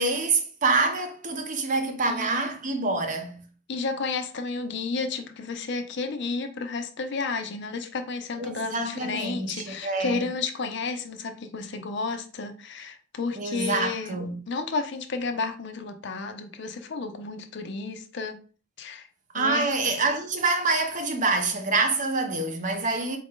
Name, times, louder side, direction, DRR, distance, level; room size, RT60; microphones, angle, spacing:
voice 1, 0.0-3.5 8.4-10.3 13.4-14.4 19.3-23.2, right 3 dB, 40° right, 0.6 m, -26 dB
voice 2, 3.7-14.2 14.5-18.4 18.8-19.1 19.3-19.7, left 4 dB, 55° left, 0.5 m, -32 dB
4.2 x 2.5 x 3.6 m
head